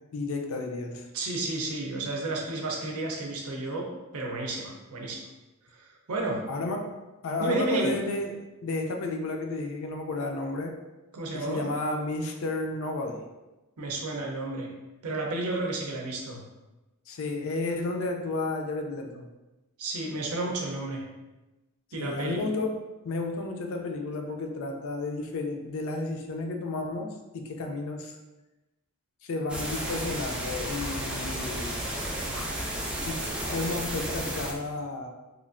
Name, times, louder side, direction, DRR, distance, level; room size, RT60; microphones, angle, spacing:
voice 1, 0.0-1.1 6.5-7.0 7.2-10.8 11.3-13.3 17.1-19.3 22.0-22.8 23.0-28.2 29.2-31.8 33.0-35.1, left 2 dB, 65° left, 3 dB, 0.4 m, -32 dB
voice 2, 1.1-3.9 4.1-5.2 5.8-6.4 7.4-7.9 11.1-11.7 13.8-14.7 15.0-16.4 19.8-21.0 21.9-22.4 32.3-32.5, right 2 dB, 75° right, 0 dB, 0.6 m, -32 dB
sound 1, 29.5-34.5, right 1 dB, 5° right, 0.3 m, -33 dB
3.0 x 2.4 x 2.5 m, 1.1 s
head